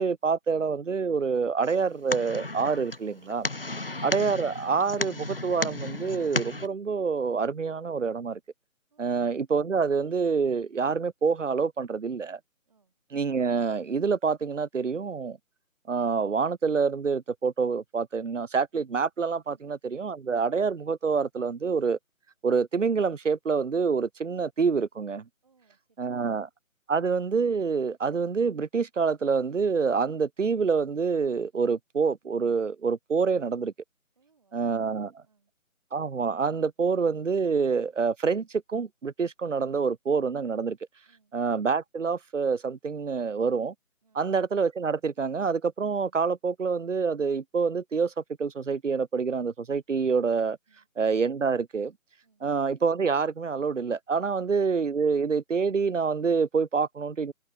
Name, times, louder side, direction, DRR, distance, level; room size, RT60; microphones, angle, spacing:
voice 1, 0.0-3.5 4.0-8.4 9.0-12.4 13.1-15.4 15.9-22.0 22.4-25.2 26.0-26.5 26.9-33.7 34.5-35.1 35.9-40.8 41.3-43.7 44.2-50.6 51.0-51.9 52.4-57.3, right 5 dB, 60° right, 0.8 m, -27 dB
sound 1, 1.6-6.7, left 2 dB, 40° left, 0.8 m, -34 dB
voice 2, 25.4-26.4 34.2-35.5 41.0-41.3 44.0-44.3 50.7-50.9 52.2-52.4, right 4 dB, 25° right, 5.9 m, -68 dB
figure-of-eight pair, 180°, 42 cm